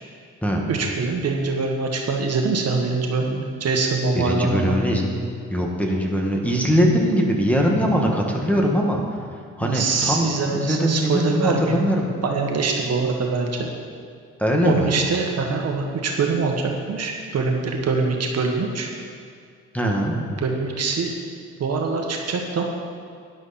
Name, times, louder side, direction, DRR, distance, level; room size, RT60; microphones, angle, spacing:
voice 1, 0.7-4.8 9.6-11.8 12.2-13.7 14.6-18.9 20.4-21.1 21.6-22.6, right 4 dB, 55° right, 1 dB, 1.6 m, -24 dB
voice 2, 4.2-5.0 5.5-9.0 9.6-12.1 14.4-14.9 19.7-20.2, equal, 5° left, 0 dB, 1.9 m, -21 dB
12.0 x 10.5 x 4.3 m, 2.2 s
cardioid pair, 90°, 30 cm